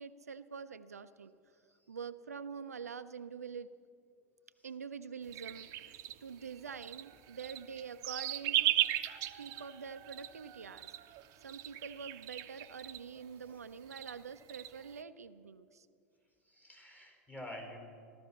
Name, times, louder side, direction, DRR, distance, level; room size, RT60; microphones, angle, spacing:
voice 1, 0.0-1.3 1.9-3.8 4.6-8.8 9.4-11.0 11.4-15.9, right 6 dB, 80° right, 12 dB, 0.6 m, -46 dB
sound 1, 5.3-13.2 13.5-13.6 13.9-15.0, right 14 dB, 45° right, 0.8 m, -38 dB
voice 2, 16.4-17.8, left 1 dB, 20° left, 1 dB, 4.5 m, -48 dB
15.5 x 13.0 x 7.2 m, 2.3 s
figure-of-eight pair, 90°, 8 cm